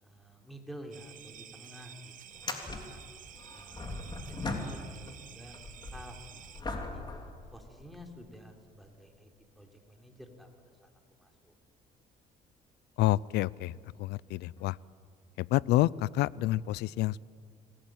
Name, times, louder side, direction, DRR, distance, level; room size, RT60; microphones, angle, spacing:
voice 1, 0.0-3.0 3.5-5.6 5.9-7.1 7.5-10.9 11.2-11.5, equal, ahead, 3 dB, 3.7 m, -51 dB
sound 1, 0.9-1.1 1.4-1.5 2.3-5.1 5.5-8.2 8.8-8.9 13.1-13.2 14.6-14.7, left 2 dB, 25° left, 3.3 m, -40 dB
sound 2, 0.9-6.6, right 10 dB, 50° right, 1.2 m, -51 dB
voice 2, 13.0-14.8 15.4-17.2, left 16 dB, 80° left, 23 dB, 0.5 m, -28 dB
26.5 x 18.5 x 9.1 m, 2.1 s
cardioid pair, 110°, 17 cm